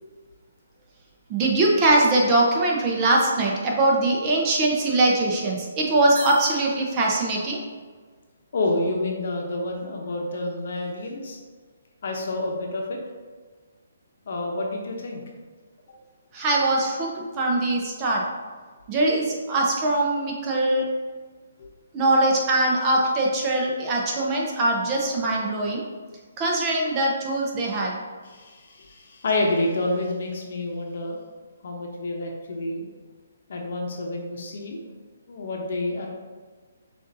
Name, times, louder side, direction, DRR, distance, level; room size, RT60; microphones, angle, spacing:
voice 1, 1.3-7.6 16.3-18.2 18.9-20.8 21.9-25.9 26.4-28.0, right 2 dB, 25° right, -2 dB, 0.8 m, -22 dB
sound 1, 6.1-7.3, right 2 dB, 55° right, 1.3 m, -38 dB
voice 2, 8.5-11.4 12.0-13.0 14.3-15.2 21.6-21.7 28.3-31.2 31.6-32.8 33.5-34.8 35.3-36.1, left 2 dB, 60° left, 0 dB, 0.8 m, -28 dB
6.2 x 2.6 x 2.7 m, 1.5 s
hypercardioid pair, 145°, 0 cm